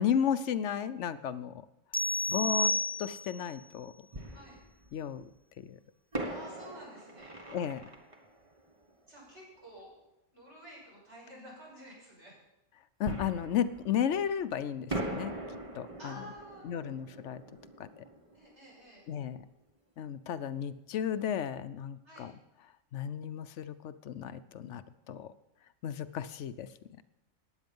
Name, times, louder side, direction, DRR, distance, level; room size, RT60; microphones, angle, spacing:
voice 1, 0.0-1.5 2.3-2.7 3.0-3.9 4.9-5.3 5.6-5.8 7.5-7.8 13.0-15.3 15.7-16.2 16.6-17.4 17.8-18.0 19.1-19.4 20.0-22.3 22.9-24.8 25.1-25.3 25.8-26.7, left 8 dB, 75° left, 13 dB, 1.0 m, -33 dB
sound 1, 1.9-3.5, left 2 dB, 15° left, 0.4 m, -31 dB
Fireworks, 2.8-2.9 4.1-5.2 6.1-9.6 13.0-14.5 14.9-19.4 19.7-19.8 20.3-20.5, right 1 dB, 25° right, 1.4 m, -42 dB
voice 2, 4.3-4.6 6.2-7.4 9.1-10.0 10.3-12.3 16.0-16.9 18.3-19.1 22.0-22.3, equal, 65° right, -4 dB, 6.9 m, -51 dB
15.5 x 9.8 x 5.4 m, 0.88 s
omnidirectional pair, 1.3 m